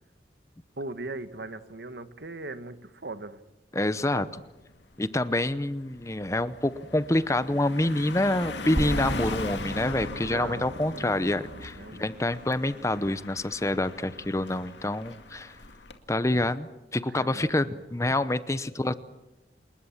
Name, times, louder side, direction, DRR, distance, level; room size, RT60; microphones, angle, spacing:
voice 1, 0.8-3.4 3.9-4.3 10.2-12.1 17.1-17.9, right 2 dB, 70° right, 11 dB, 1.5 m, -40 dB
voice 2, 3.7-4.2 5.0-15.6 16.1-18.9, left 1 dB, 15° left, 14 dB, 0.8 m, -27 dB
Car passing by, 4.4-4.6 5.0-16.0, left 2 dB, 85° left, 2.3 m, -39 dB
sound 1, 8.8-12.7, equal, 30° right, 2.9 m, -37 dB
27.5 x 21.0 x 7.3 m, 1.0 s
head